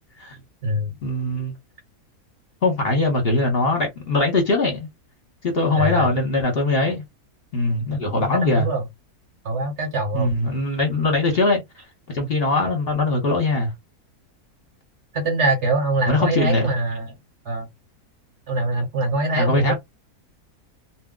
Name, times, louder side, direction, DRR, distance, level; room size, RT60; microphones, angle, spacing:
voice 1, 1.0-1.5 2.6-4.9 5.4-7.0 7.5-8.7 10.1-11.6 12.1-13.7 16.1-16.7 19.4-19.7, left 2 dB, 45° left, 1.0 m, -21 dB
voice 2, 5.7-6.1 8.2-8.8 9.4-10.3 15.1-17.1 17.4-17.7 18.5-19.7, right 2 dB, 50° right, 1.0 m, -23 dB
2.5 x 2.2 x 3.7 m
omnidirectional pair, 1.7 m